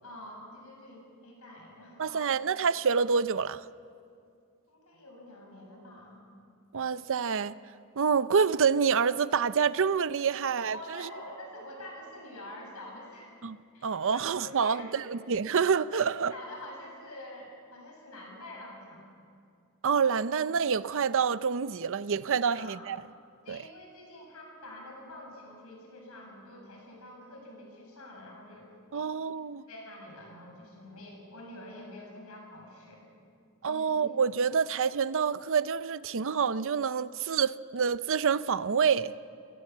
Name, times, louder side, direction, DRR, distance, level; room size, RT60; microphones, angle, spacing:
voice 1, 0.0-2.3 4.7-6.2 10.7-13.3 13.7-15.0 15.9-19.1 22.4-22.9 23.4-29.1 29.7-33.0 33.6-34.1, left 1 dB, 75° left, 7.4 m, -47 dB
voice 2, 2.0-3.6 6.7-7.5 8.0-11.1 13.4-13.6 13.8-16.3 19.8-23.0 23.5-23.6 28.9-29.6 33.6-39.1, right 6 dB, 65° right, 0.6 m, -27 dB
28.5 x 18.0 x 7.4 m
head